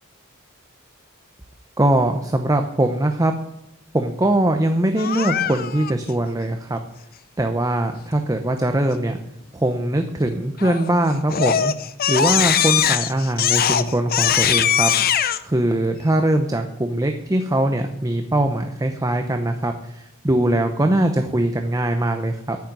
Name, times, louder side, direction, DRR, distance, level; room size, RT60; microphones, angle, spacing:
voice 1, 1.8-3.3 3.9-6.8 7.4-9.2 9.5-11.7 12.1-14.9 15.4-22.6, right 1 dB, 15° right, 5 dB, 0.7 m, -21 dB
Crying sobbing, 5.0-5.9 10.6-10.9 11.3-15.4, left 9 dB, 45° left, 0.6 m, -20 dB
9.3 x 7.3 x 9.0 m, 0.82 s
head